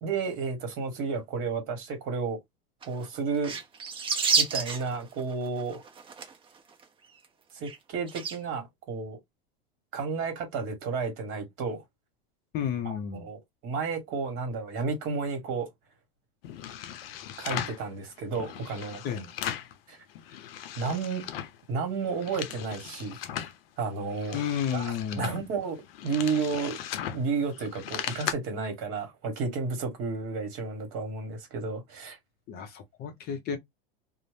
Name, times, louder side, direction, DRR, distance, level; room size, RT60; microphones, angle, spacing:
voice 1, 0.0-2.4 2.9-3.6 4.4-5.8 7.5-9.2 9.9-11.8 12.8-15.7 17.4-19.0 19.9-20.0 20.8-21.2 21.7-23.2 23.8-24.4 24.7-25.8 26.0-26.8 27.1-32.2, right 4 dB, 45° right, 1.3 m, -32 dB
sound 1, 2.8-3.1 3.4-6.6 6.8-6.9 7.2-7.3 7.6-7.8 8.1-8.4, right 5 dB, 20° right, 0.5 m, -29 dB
voice 2, 12.5-13.3 19.0-19.3 24.3-25.3 32.5-33.6, left 8 dB, 35° left, 0.5 m, -32 dB
sound 2, 16.4-17.8 18.3-19.8 20.1-21.6 22.0-23.6 24.0-28.3, left 10 dB, 80° left, 0.6 m, -38 dB
2.5 x 2.0 x 3.2 m
supercardioid pair, 130°, 29 cm